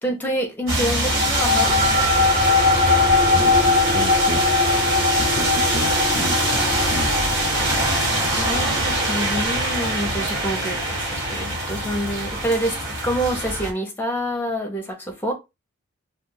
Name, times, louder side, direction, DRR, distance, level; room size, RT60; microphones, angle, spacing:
voice 1, 0.0-1.8 8.3-15.3, equal, 10° left, 0.9 m, -27 dB
sound 1, 0.7-13.7, right 1 dB, 55° right, 1.9 m, -23 dB
sound 2, 1.0-11.8, left 3 dB, 30° right, 0.6 m, -22 dB
voice 2, 2.9-4.5 5.1-7.3, left 2 dB, 35° left, 0.4 m, -32 dB
2.6 x 2.5 x 3.8 m
head